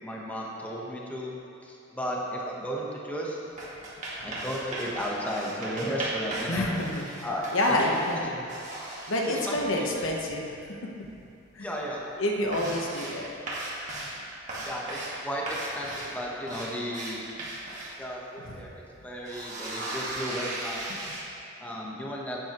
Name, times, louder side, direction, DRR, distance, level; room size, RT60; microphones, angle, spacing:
voice 1, 0.0-1.3 1.6-3.4 4.2-6.7 7.2-7.8 9.4-10.1 11.6-12.0 14.6-17.2 18.0-18.7 19.0-20.8 21.6-22.4, equal, 10° left, -3 dB, 1.0 m, -34 dB
sound 1, 3.4-8.2 8.5-9.6 10.7-10.8 11.2-11.6 11.9-12.0 12.3-13.2 13.5-14.2 14.5-15.2 15.5-17.9 18.5-18.6 19.0-21.2, right 2 dB, 40° right, 1.8 m, -37 dB
voice 2, 6.5-7.3 7.5-8.4 9.1-10.6 11.0-11.1 11.5-11.7 12.2-13.3 18.4-18.6, left 1 dB, 80° left, 0 dB, 1.0 m, -28 dB
9.4 x 9.3 x 3.0 m, 2.6 s
head